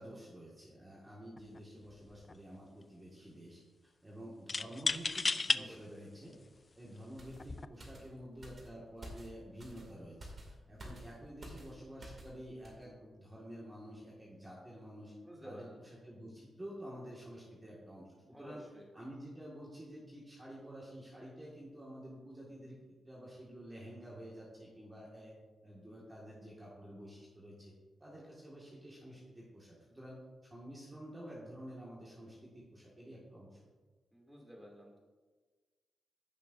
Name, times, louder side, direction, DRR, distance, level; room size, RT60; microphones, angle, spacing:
voice 1, 0.0-6.3 6.8-15.1 15.4-18.6 18.9-22.8 23.0-25.4 25.6-27.7 28.0-33.6, equal, 20° right, -6 dB, 1.9 m, -50 dB
sound 1, 1.4-1.6 1.9-2.6 4.5-5.6 6.3-6.4 7.3-7.7, left 3 dB, 30° left, 0.3 m, -33 dB
voice 2, 5.5-6.1 15.2-15.8 18.3-18.9 34.1-35.0, equal, ahead, -3 dB, 2.7 m, -52 dB
sound 2, 7.2-12.4 12.6-12.8, right 1 dB, 40° right, 2.4 m, -51 dB
15.0 x 6.7 x 2.7 m, 1.4 s
cardioid pair, 100°, 0 cm